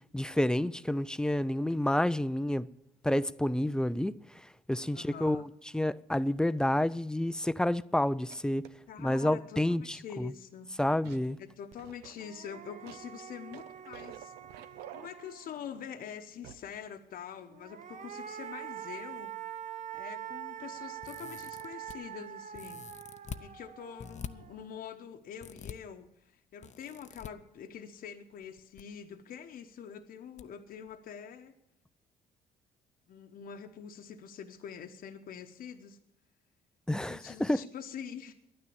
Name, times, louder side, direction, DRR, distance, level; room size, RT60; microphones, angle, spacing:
voice 1, 0.1-2.7 3.0-4.2 4.7-8.7 9.0-10.3 10.8-11.4 36.9-37.6, left 1 dB, 5° left, 0.4 m, -29 dB
voice 2, 4.9-5.4 8.9-10.7 11.4-14.3 14.9-19.3 19.9-22.9 23.4-26.1 26.5-31.5 33.1-36.0 36.9-38.3, left 8 dB, 60° left, 1.0 m, -45 dB
sound 1, 6.3-6.6 7.2-7.3 8.2-8.9 11.0-11.4 11.8-15.6 16.4-16.8 17.0-17.1, right 10 dB, 85° right, 0.8 m, -51 dB
sound 2, 11.7-11.8 12.2-15.8 17.5-24.8, right 10 dB, 50° right, 1.0 m, -45 dB
sound 3, 21.0-22.0 22.5-23.4 24.0-24.3 25.4-25.7 26.6-27.3 28.4-28.8 29.1-29.2 30.4-30.5 30.9-31.0, left 8 dB, 45° left, 0.7 m, -44 dB
11.0 x 9.5 x 8.6 m
supercardioid pair, 75°, 16 cm